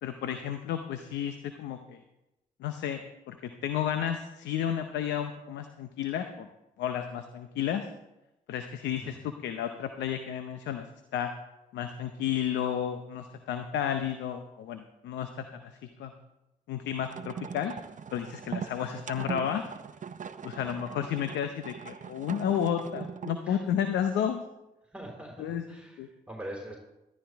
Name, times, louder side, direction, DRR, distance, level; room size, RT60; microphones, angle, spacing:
voice 1, 0.0-2.0 2.6-6.5 6.8-7.9 8.5-10.9 11.1-11.3 11.7-15.4 16.0-16.1 16.7-17.7 18.1-19.6 20.4-24.4 25.4-25.6 26.0-26.1, left 9 dB, 85° left, 8 dB, 0.7 m, -32 dB
voice 2, 9.0-9.3 20.5-20.8 23.4-23.6 24.8-26.8, right 1 dB, 5° right, -2 dB, 4.1 m, -44 dB
sound 1, 17.0-23.5, right 7 dB, 45° right, 0.7 m, -40 dB
13.5 x 12.5 x 3.5 m, 0.96 s
supercardioid pair, 50°, 18 cm